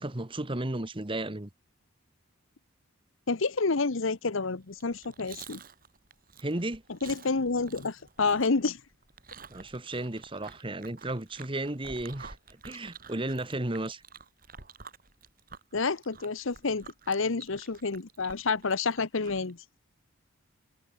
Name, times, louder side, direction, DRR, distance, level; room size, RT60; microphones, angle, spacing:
voice 1, 0.0-1.5 6.4-6.8 9.5-12.4 12.6-14.0, right 1 dB, 25° right, 1.4 m, -34 dB
voice 2, 3.3-5.6 7.0-8.8 15.7-19.6, left 4 dB, 70° left, 1.0 m, -29 dB
Chewing mastication, 4.7-19.5, right 5 dB, 45° right, 4.8 m, -50 dB
head